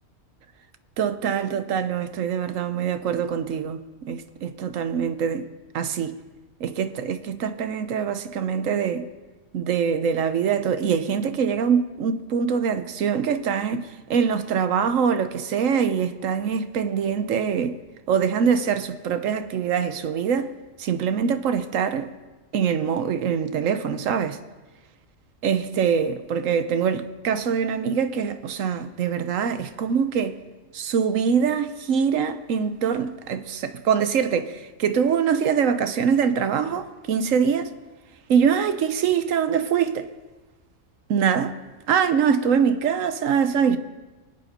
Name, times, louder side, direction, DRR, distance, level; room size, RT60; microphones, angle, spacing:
voice 1, 1.0-5.5 5.7-6.2 6.6-9.1 9.5-17.8 18.1-20.5 20.8-22.1 22.5-24.4 25.4-30.4 30.7-37.7 38.3-40.1 41.1-41.6 41.9-43.8, right 7 dB, 85° right, 1.2 m, -24 dB
24.0 x 8.7 x 5.3 m
omnidirectional pair, 1.3 m